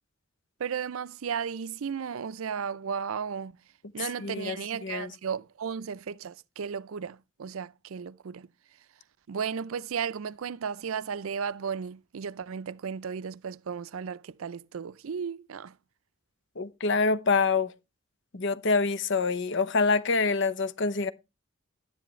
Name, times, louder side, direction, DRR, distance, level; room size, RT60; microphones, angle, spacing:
voice 1, 0.6-3.5 3.9-8.5 9.3-15.8, right 6 dB, 90° right, 0.5 m, -34 dB
voice 2, 4.2-4.6 4.8-5.1 16.6-17.7 18.3-21.1, left 4 dB, 60° left, 0.8 m, -26 dB
11.0 x 10.0 x 3.1 m
head